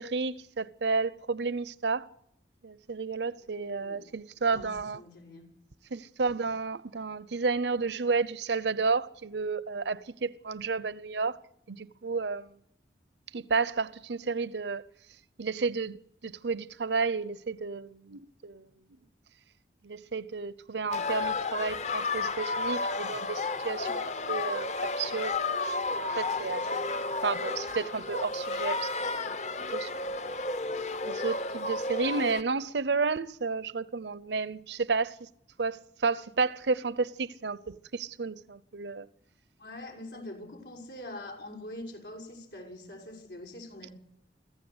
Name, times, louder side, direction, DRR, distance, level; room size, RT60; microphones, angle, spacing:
voice 1, 0.0-2.1 2.6-5.0 5.9-11.4 11.7-12.5 13.3-14.9 15.4-18.6 19.8-26.9 27.2-28.9 29.3-29.4 29.7-30.2 31.0-35.3 35.6-39.1, right 4 dB, 80° right, 0.7 m, -32 dB
voice 2, 3.4-4.0 4.5-5.5 26.4-26.5 39.6-43.9, left 1 dB, 90° left, 6.2 m, -44 dB
sound 1, 20.9-32.4, left 3 dB, 40° left, 0.8 m, -32 dB
25.0 x 15.0 x 8.0 m
head